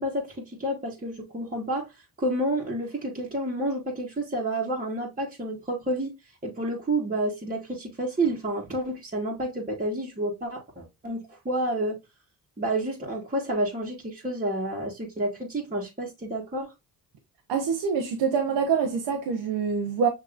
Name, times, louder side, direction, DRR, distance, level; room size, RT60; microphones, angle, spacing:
voice 1, 0.0-1.9 2.2-6.1 6.4-12.0 12.6-16.7, right 1 dB, 20° right, 1.5 m, -29 dB
voice 2, 17.5-20.1, right 6 dB, 80° right, 0.9 m, -25 dB
6.4 x 2.9 x 2.5 m
cardioid pair, 65°, 41 cm